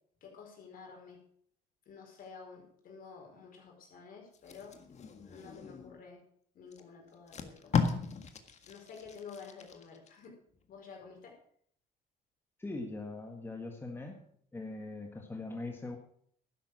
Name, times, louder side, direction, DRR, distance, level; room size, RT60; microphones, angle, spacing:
voice 1, 0.2-1.2 1.9-5.0 5.2-6.2 6.5-7.8 8.7-10.3 10.7-11.3, left 5 dB, 60° left, 1 dB, 4.9 m, -50 dB
Packing tape duct tape, 4.3-6.0 6.7-6.8 7.1-10.1 10.5-10.8, left 5 dB, 40° left, 1.7 m, -36 dB
voice 2, 12.6-14.2 14.5-16.0, left 2 dB, 15° left, 2 dB, 1.7 m, -41 dB
12.0 x 10.0 x 6.2 m, 0.63 s
cardioid pair, 110°, 17 cm